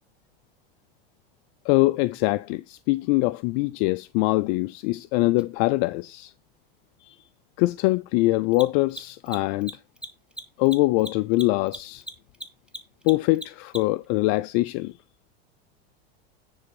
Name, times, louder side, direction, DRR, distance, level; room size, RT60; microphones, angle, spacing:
voice 1, 1.7-6.3 7.0-7.1 7.6-9.7 10.6-12.0 13.0-14.9, left 20 dB, 55° left, 0.4 m, -23 dB
Mechanisms, 5.4-5.5 8.4-14.1, right 1 dB, 5° right, 1.1 m, -38 dB
9.6 x 4.1 x 5.2 m
supercardioid pair, 110°, 31 cm